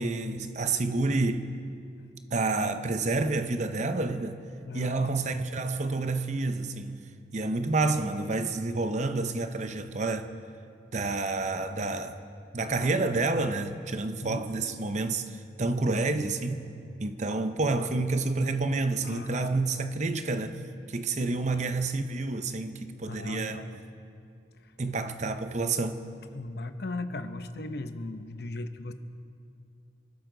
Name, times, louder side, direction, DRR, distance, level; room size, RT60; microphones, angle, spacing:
voice 1, 0.0-1.5 2.3-4.4 4.7-7.0 7.3-10.3 10.9-12.2 12.5-15.2 15.6-16.6 17.0-20.6 20.9-23.6 24.8-26.0, right 3 dB, 40° right, 0.7 m, -29 dB
voice 2, 4.7-5.1 14.2-14.8 19.0-19.5 23.1-23.8 24.6-24.7 26.3-28.9, left 2 dB, 60° left, 0.8 m, -37 dB
26.5 x 12.5 x 3.9 m
head